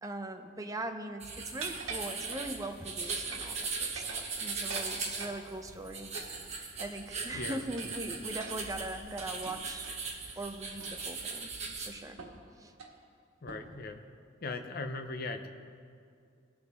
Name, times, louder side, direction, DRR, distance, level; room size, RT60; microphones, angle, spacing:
voice 1, 0.0-6.1 6.6-9.9 10.4-11.5 11.9-12.2 12.6-12.7, right 2 dB, 15° right, 5 dB, 0.6 m, -40 dB
sound 1, 1.2-11.9, right 4 dB, 35° right, 1.3 m, -39 dB
sound 2, 1.6-2.8 3.1-3.6 3.8-5.4 6.1-7.1 7.8-10.0 10.8-11.1 11.5-11.6 12.2-12.4 12.7-13.0 13.5-13.8, right 4 dB, 90° right, 1.5 m, -45 dB
voice 2, 7.3-7.9 13.4-14.0 14.4-15.5, left 3 dB, 50° left, 7 dB, 0.7 m, -39 dB
19.0 x 6.4 x 3.5 m, 2.3 s
head